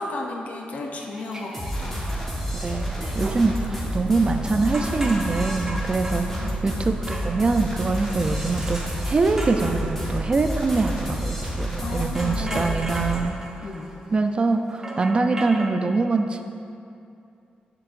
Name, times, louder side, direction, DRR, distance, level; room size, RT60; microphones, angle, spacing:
voice 1, 0.0-2.1 6.1-6.6 11.8-12.9 13.6-13.9, left 2 dB, 55° left, 1 dB, 0.6 m, -34 dB
sound 1, 1.0-15.7, right 1 dB, 20° right, 0.8 m, -38 dB
sound 2, 1.5-13.3, equal, 10° left, 1.2 m, -29 dB
voice 2, 2.6-13.4 14.1-16.4, right 3 dB, 35° right, 6 dB, 0.4 m, -24 dB
11.0 x 4.7 x 2.5 m, 2.6 s
cardioid pair, 110°, 3 cm